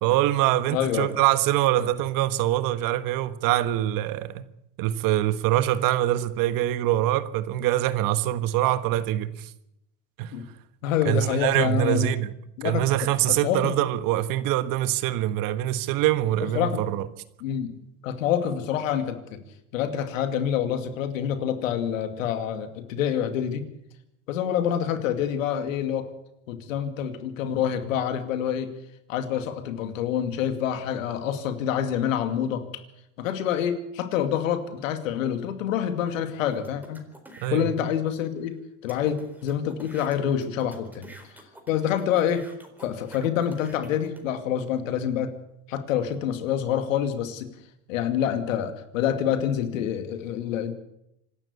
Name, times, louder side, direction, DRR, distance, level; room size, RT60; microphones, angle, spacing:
voice 1, 0.0-4.5 4.8-9.5 10.2-10.3 11.0-12.3 12.6-17.1 37.4-37.7, right 13 dB, 60° right, 1.5 m, -24 dB
voice 2, 0.7-1.1 1.8-1.9 10.3-10.5 10.8-12.1 12.6-12.8 13.3-13.7 16.4-16.8 17.4-17.8 18.0-19.4 19.7-23.6 24.3-26.1 26.5-28.7 29.1-32.6 33.2-37.0 37.5-38.5 38.8-41.1 41.7-42.4 42.8-45.3 45.7-47.5 47.9-50.7, left 9 dB, 90° left, 2.4 m, -27 dB
sound 1, 36.5-37.5 38.1-38.2 38.4-38.5 38.9-44.2, right 1 dB, 5° right, 4.1 m, -49 dB
26.0 x 12.5 x 8.4 m
supercardioid pair, 110°, 38 cm